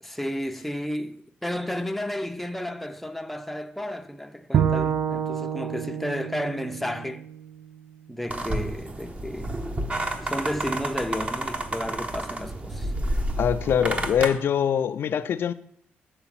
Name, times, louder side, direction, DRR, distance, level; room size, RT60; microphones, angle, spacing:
voice 1, 0.0-7.3 8.1-9.6 10.2-12.9, equal, 5° left, 0.5 m, -32 dB
Bowed string instrument, 4.5-7.8, right 8 dB, 55° right, 0.4 m, -28 dB
sound 1, 8.3-14.3, right 1 dB, 30° right, 0.9 m, -30 dB
voice 2, 13.4-15.5, left 8 dB, 60° left, 0.3 m, -23 dB
6.9 x 3.9 x 5.9 m
supercardioid pair, 65°, 4 cm